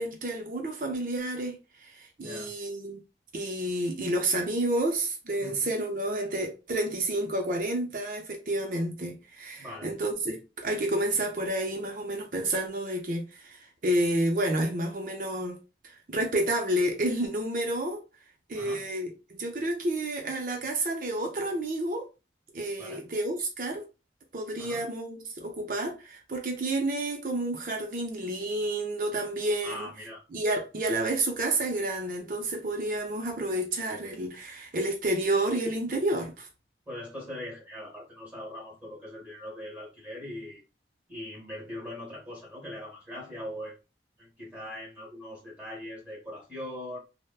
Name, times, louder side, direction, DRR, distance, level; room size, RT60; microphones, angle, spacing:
voice 1, 0.0-3.0 3.3-18.0 18.5-22.0 22.5-23.8 24.3-29.9 30.3-36.5, right 1 dB, 50° right, 0.5 m, -30 dB
voice 2, 2.2-2.5 5.4-5.7 9.6-9.9 18.5-18.8 22.8-23.0 24.6-24.8 29.6-30.2 36.9-40.6 41.1-43.8 44.2-47.0, left 1 dB, 10° right, 1.2 m, -41 dB
3.3 x 2.1 x 2.3 m
head